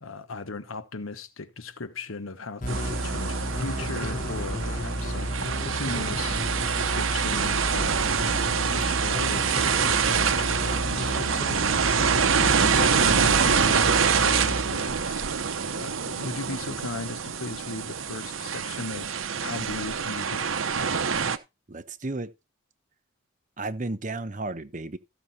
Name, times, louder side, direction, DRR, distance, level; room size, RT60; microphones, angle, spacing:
voice 1, 0.0-6.4 6.8-8.1 8.5-15.3 15.7-19.1 19.4-20.5, left 3 dB, 90° left, 1.2 m, -37 dB
sound 1, 2.6-15.9, left 1 dB, 40° left, 1.1 m, -32 dB
sound 2, 2.7-21.4, right 6 dB, 80° right, 0.9 m, -26 dB
voice 2, 21.7-22.3 23.6-25.0, right 2 dB, 40° right, 0.8 m, -33 dB
14.0 x 6.1 x 4.2 m
head